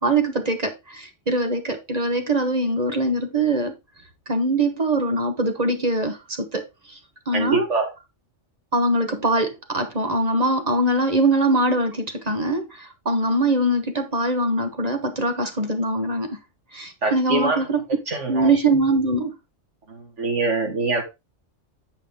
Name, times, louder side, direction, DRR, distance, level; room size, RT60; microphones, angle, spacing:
voice 1, 0.0-3.7 4.3-7.0 7.3-7.7 8.7-16.4 16.7-17.8 18.3-19.3, right 2 dB, 35° right, 1.2 m, -22 dB
voice 2, 7.3-7.9 17.0-17.6 18.1-18.5 19.9-21.0, right 3 dB, 70° right, 2.4 m, -24 dB
8.7 x 5.6 x 3.6 m
omnidirectional pair, 1.2 m